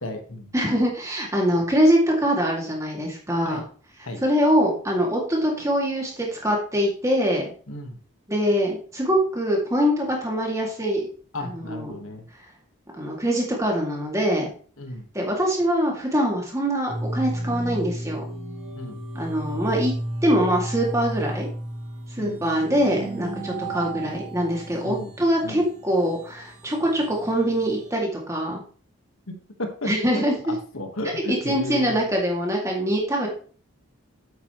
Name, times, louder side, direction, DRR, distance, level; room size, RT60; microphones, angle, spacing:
voice 1, 0.0-0.5 3.4-3.6 4.0-4.2 7.7-8.0 11.3-12.3 14.8-15.0 18.7-19.0 22.2-22.5 23.6-23.8 24.8-25.1 25.4-25.6 29.3-32.0, left 1 dB, 75° left, 5 dB, 1.6 m, -34 dB
voice 2, 0.5-3.6 4.2-7.4 8.3-11.1 11.4-11.9 13.0-14.5 15.1-18.2 19.1-19.9 20.2-21.5 22.2-28.6 29.9-30.3 31.3-33.3, equal, 15° right, -1 dB, 2.3 m, -23 dB
sound 1, 16.9-27.9, right 1 dB, 90° right, 2.1 m, -33 dB
8.5 x 8.3 x 3.1 m, 0.43 s
head